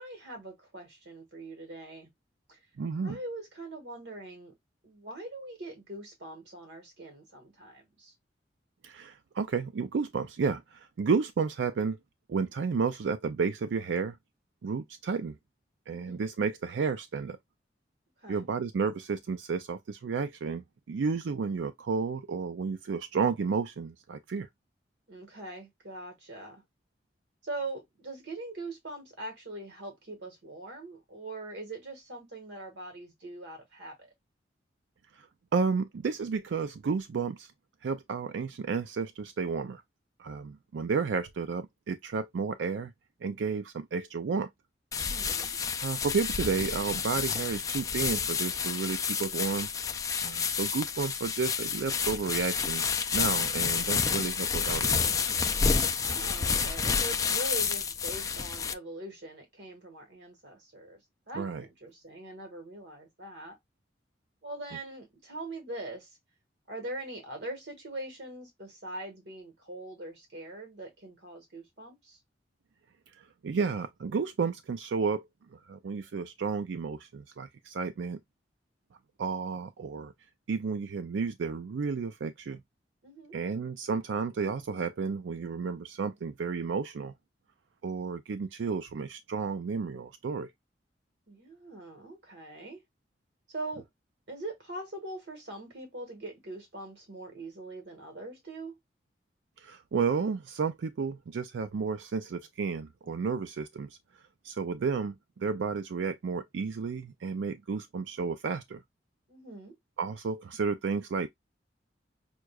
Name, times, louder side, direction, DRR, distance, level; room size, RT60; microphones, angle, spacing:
voice 1, 0.0-2.1 2.5-2.6 3.0-4.5 4.8-8.1 15.9-16.2 18.2-18.5 25.1-26.6 27.4-34.1 45.0-45.6 55.7-61.0 61.3-63.6 64.4-66.2 66.7-72.2 83.0-83.4 91.3-92.8 93.5-93.8 94.3-98.7 109.3-109.7, right 2 dB, 70° right, 1.4 m, -42 dB
voice 2, 2.8-3.2 8.8-12.0 12.3-14.2 14.6-15.4 15.9-17.4 18.3-24.5 35.1-35.3 35.5-37.5 37.8-39.8 40.2-42.9 43.2-44.5 45.8-49.7 50.2-52.8 53.1-55.2 61.4-61.7 73.1-75.2 75.5-78.2 79.2-80.1 80.5-82.6 83.3-87.1 87.8-90.5 99.6-104.0 104.4-108.8 110.0-111.3, right 5 dB, 90° right, 0.4 m, -32 dB
sound 1, 44.9-58.7, left 6 dB, 20° left, 0.3 m, -29 dB
6.2 x 2.2 x 2.3 m
head